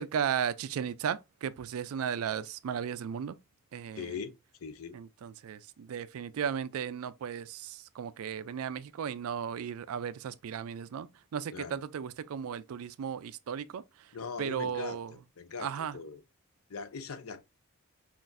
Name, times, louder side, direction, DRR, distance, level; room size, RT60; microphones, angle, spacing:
voice 1, 0.0-3.4 3.7-4.1 4.9-13.8 14.4-15.1 15.6-16.0, right 8 dB, 70° right, 0.3 m, -35 dB
voice 2, 4.0-4.4 4.6-5.0 11.5-11.8 14.1-16.2 16.7-17.4, left 5 dB, 70° left, 0.5 m, -41 dB
5.8 x 2.5 x 2.5 m
head